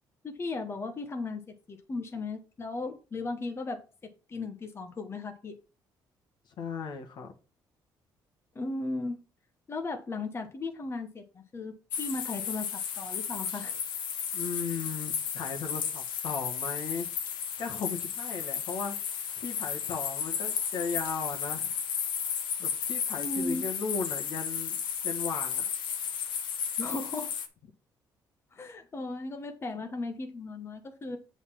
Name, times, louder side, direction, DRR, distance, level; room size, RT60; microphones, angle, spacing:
voice 1, 0.2-1.4 1.7-3.8 4.3-5.6 8.5-9.2 9.7-13.8 23.2-23.6 26.8-27.3 28.5-31.2, left 3 dB, 30° left, 5 dB, 1.1 m, -36 dB
voice 2, 6.6-7.3 14.3-17.1 17.6-21.7 22.6-24.8 25.0-25.7, left 5 dB, 65° left, 4 dB, 1.6 m, -36 dB
sound 1, 11.9-27.5, left 7 dB, 85° left, 1.3 m, -33 dB
7.8 x 4.0 x 5.8 m, 0.34 s
cardioid pair, 100°, 8 cm